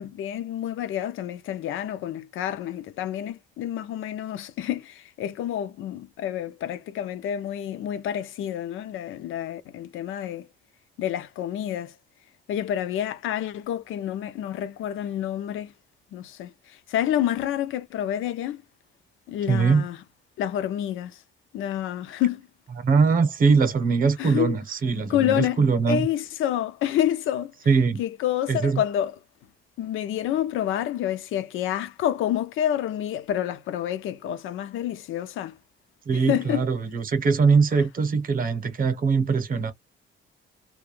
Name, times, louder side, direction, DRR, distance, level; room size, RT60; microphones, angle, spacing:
voice 1, 0.0-10.5 11.0-12.0 12.5-15.7 16.1-18.6 19.3-20.0 20.4-21.2 21.5-22.4 24.2-24.6 25.1-25.6 25.9-27.5 28.0-29.1 29.8-35.6 36.1-36.7, left 11 dB, 70° left, 0.4 m, -28 dB
voice 2, 19.5-19.9 22.8-26.1 27.7-28.0 28.5-28.8 36.1-39.7, right 5 dB, 40° right, 0.8 m, -22 dB
2.2 x 2.1 x 3.0 m
cardioid pair, 140°, 21 cm